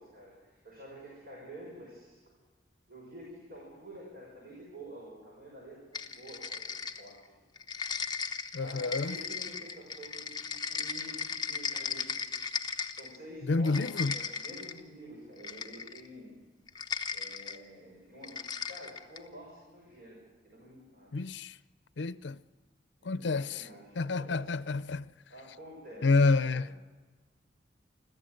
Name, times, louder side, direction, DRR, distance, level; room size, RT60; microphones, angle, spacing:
voice 1, 0.0-2.2 2.9-7.2 8.5-13.8 14.1-16.3 17.1-20.2 20.4-21.2 23.0-24.5 25.3-26.1 26.4-26.6, equal, 50° right, 6.3 m, -49 dB
sound 1, 5.9-7.2 7.6-13.2 13.5-14.8 15.4-16.1 16.7-17.6 18.2-19.3, left 5 dB, 20° left, 0.8 m, -37 dB
voice 2, 8.5-9.2 13.4-14.1 21.1-21.5 22.0-22.4 23.1-23.6 24.0-25.1 26.0-26.7, left 3 dB, 70° left, 0.6 m, -28 dB
25.5 x 14.5 x 7.8 m
head